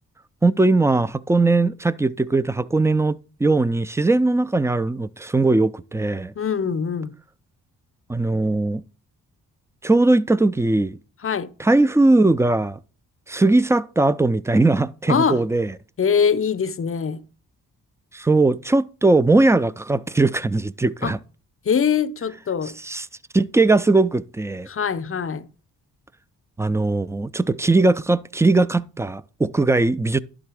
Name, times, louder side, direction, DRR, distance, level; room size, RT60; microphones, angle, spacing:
voice 1, 0.4-6.3 8.1-8.8 9.8-11.0 11.6-12.8 13.3-15.7 18.1-21.2 22.8-23.1 23.3-24.7 26.6-30.2, right 2 dB, 10° right, 0.3 m, -19 dB
voice 2, 6.4-7.1 11.2-11.5 15.1-15.4 16.0-17.2 21.0-21.1 21.7-22.7 24.7-25.5, left 7 dB, 35° left, 0.7 m, -23 dB
11.0 x 3.8 x 4.8 m
supercardioid pair, 45°, 38 cm